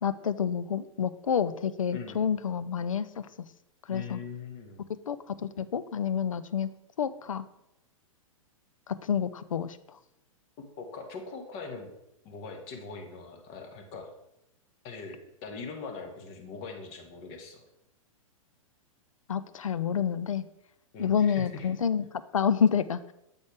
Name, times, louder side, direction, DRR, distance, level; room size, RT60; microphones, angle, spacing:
voice 1, 0.0-3.3 3.9-4.2 5.1-6.7 7.0-7.4 8.9-10.0 19.3-20.4 21.0-22.0 22.3-23.1, left 7 dB, 70° left, 14 dB, 0.4 m, -28 dB
voice 2, 1.9-2.2 3.9-4.8 10.6-11.9 12.2-14.1 14.8-17.6 20.9-21.7, left 4 dB, 35° left, 3 dB, 1.2 m, -41 dB
7.1 x 4.2 x 4.7 m, 0.86 s
figure-of-eight pair, 105°, 18 cm